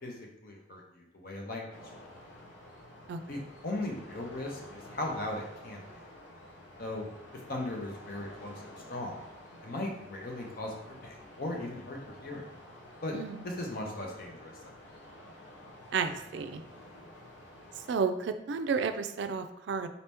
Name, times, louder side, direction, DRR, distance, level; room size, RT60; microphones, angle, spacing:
voice 1, 0.0-1.8 3.3-5.9 6.8-7.1 7.5-9.3 9.6-12.4 13.0-13.1 13.4-14.7, left 1 dB, 50° left, 0 dB, 0.8 m, -38 dB
sound 1, 1.7-17.9, left 1 dB, 85° left, 0.8 m, -51 dB
voice 2, 13.1-13.4 15.9-16.6 17.9-19.9, right 5 dB, 70° right, 9 dB, 0.3 m, -32 dB
4.0 x 2.8 x 3.4 m, 0.84 s
head